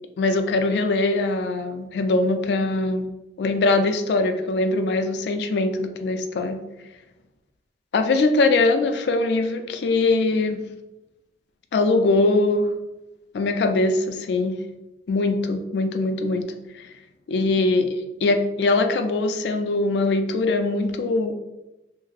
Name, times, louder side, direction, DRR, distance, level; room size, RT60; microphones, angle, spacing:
voice 1, 0.2-3.1 3.4-6.6 7.9-10.6 11.7-12.7 13.3-14.6 15.1-16.5 16.7-16.9 17.3-21.3, left 2 dB, 70° left, 7 dB, 0.3 m, -22 dB
2.4 x 2.0 x 3.8 m, 0.96 s
head